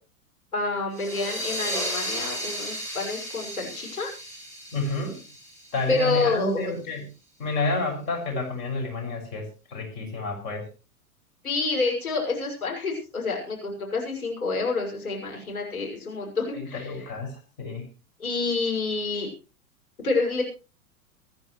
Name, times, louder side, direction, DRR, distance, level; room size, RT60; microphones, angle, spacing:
voice 1, 0.5-4.1 5.9-6.7 11.4-17.1 18.2-19.3 20.0-20.4, left 3 dB, 70° left, 0 dB, 6.3 m, -28 dB
sound 1, 0.9-6.2, equal, 5° left, 7.9 m, -34 dB
voice 2, 4.7-5.2 5.7-7.1 7.4-10.6 16.5-17.9, left 2 dB, 40° left, 2 dB, 6.6 m, -30 dB
25.5 x 11.0 x 3.2 m, 0.33 s
figure-of-eight pair, 95°, 44 cm